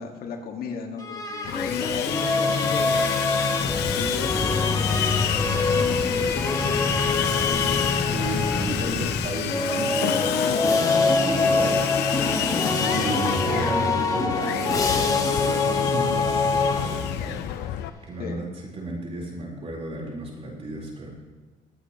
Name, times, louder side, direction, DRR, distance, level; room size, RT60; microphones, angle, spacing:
voice 1, 0.0-3.1 3.9-8.2 8.6-9.1 10.3-10.7 11.6-12.0 18.2-18.4, left 5 dB, 60° left, 3 dB, 1.7 m, -36 dB
sound 1, 1.0-8.9 9.4-17.4, left 3 dB, 20° left, 1.6 m, -25 dB
Sawing, 1.4-17.9, left 11 dB, 80° left, 0.7 m, -29 dB
sound 2, 3.6-9.3, left 1 dB, 5° left, 0.6 m, -31 dB
voice 2, 8.1-10.5 11.0-11.8 12.6-18.4 18.7-21.1, right 2 dB, 35° right, -2 dB, 4.0 m, -33 dB
23.5 x 8.3 x 3.0 m, 1.3 s
cardioid pair, 110°, 17 cm